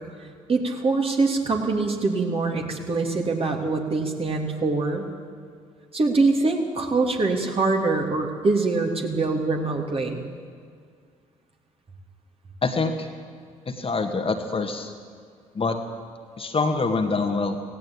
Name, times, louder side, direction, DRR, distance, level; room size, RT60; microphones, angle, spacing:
voice 1, 0.5-5.0 5.9-10.2, right 3 dB, 35° right, 2 dB, 3.2 m, -24 dB
voice 2, 12.6-13.1 13.7-14.9 15.5-15.8 16.4-17.6, left 3 dB, 30° left, 5 dB, 2.2 m, -25 dB
17.5 x 17.0 x 8.7 m, 2.1 s
figure-of-eight pair, 50°, 17 cm